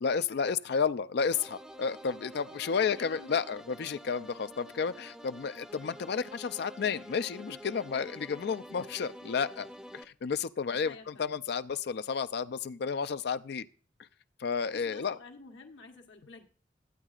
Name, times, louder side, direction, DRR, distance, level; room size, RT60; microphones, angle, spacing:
voice 1, 0.0-9.7 9.9-13.7 14.4-15.2, left 6 dB, 60° left, 0.4 m, -32 dB
sound 1, 1.3-10.0, equal, 5° right, 0.5 m, -48 dB
voice 2, 2.7-3.4 10.7-11.4 14.7-16.5, left 4 dB, 75° left, 1.2 m, -50 dB
14.0 x 8.9 x 2.4 m
head